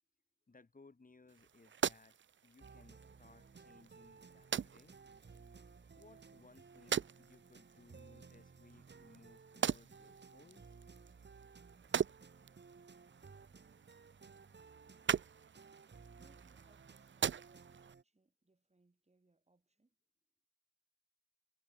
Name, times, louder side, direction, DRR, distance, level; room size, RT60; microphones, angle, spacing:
voice 1, 0.5-2.2 2.4-5.0 5.9-10.8 11.1-11.3, left 3 dB, 45° left, 4.1 m, -63 dB
sound 1, 1.3-17.9, right 8 dB, 85° right, 0.6 m, -43 dB
sound 2, 2.6-18.0, right 5 dB, 70° right, 4.1 m, -58 dB
voice 2, 16.2-20.0, right 2 dB, 35° right, 7.1 m, -73 dB
wide cardioid pair, 70°, 19 cm